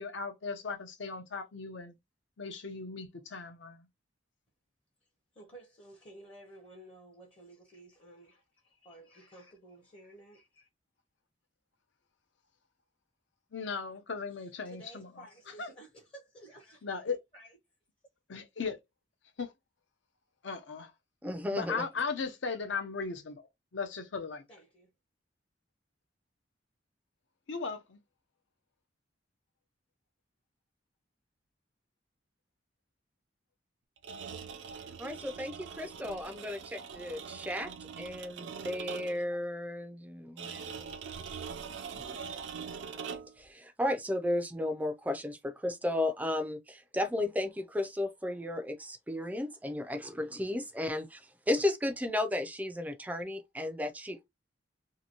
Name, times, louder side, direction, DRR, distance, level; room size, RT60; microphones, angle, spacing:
voice 1, 0.0-2.0 2.4-3.9 13.5-15.2 15.6-15.7 16.8-17.2 18.3-18.7 19.4-19.5 20.4-20.9 21.5-24.4 27.5-28.0, left 5 dB, 75° left, 0.7 m, -37 dB
voice 2, 5.3-10.7 14.3-17.0 17.3-17.5 24.5-24.9, right 1 dB, 30° left, 0.7 m, -54 dB
voice 3, 21.2-21.8 35.0-37.7 38.0-40.9 42.0-42.1 43.0-43.1 43.4-54.3, left 1 dB, 10° right, 0.4 m, -34 dB
sound 1, 34.0-39.3 40.4-43.4, right 6 dB, 70° right, 0.4 m, -43 dB
2.8 x 2.6 x 2.7 m
head